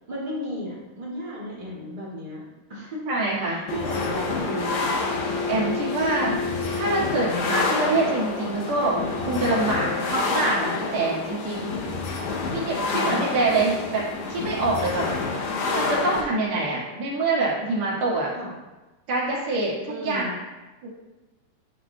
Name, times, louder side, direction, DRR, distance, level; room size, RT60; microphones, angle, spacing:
voice 1, 0.1-2.4 2.7-3.0 3.5-5.0 12.1-12.3 12.8-13.3 14.9-15.1 18.3-18.5 19.9-20.4, equal, 25° right, -9 dB, 1.2 m, -34 dB
voice 2, 3.1-3.6 5.4-6.4 6.7-11.6 12.5-14.0 14.3-15.0 15.7-18.3 19.1-20.3 20.8-20.9, right 2 dB, 55° right, -6 dB, 2.7 m, -25 dB
sound 1, 3.7-16.2, left 3 dB, 80° left, 1.6 m, -28 dB
11.0 x 4.9 x 2.2 m, 1.1 s
omnidirectional pair, 4.0 m